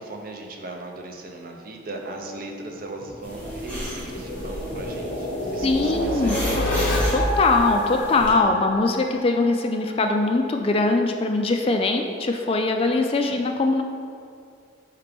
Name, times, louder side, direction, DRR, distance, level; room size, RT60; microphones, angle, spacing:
voice 1, 0.0-6.9 13.2-13.4, right 2 dB, 45° right, 2 dB, 0.6 m, -38 dB
sound 1, 3.0-9.8, left 1 dB, 50° left, 0.9 m, -28 dB
sound 2, 3.2-8.3, equal, 5° left, 1.3 m, -35 dB
voice 2, 5.6-6.4 7.1-13.8, left 3 dB, 30° left, 4 dB, 0.3 m, -22 dB
5.7 x 4.9 x 3.4 m, 2.3 s
head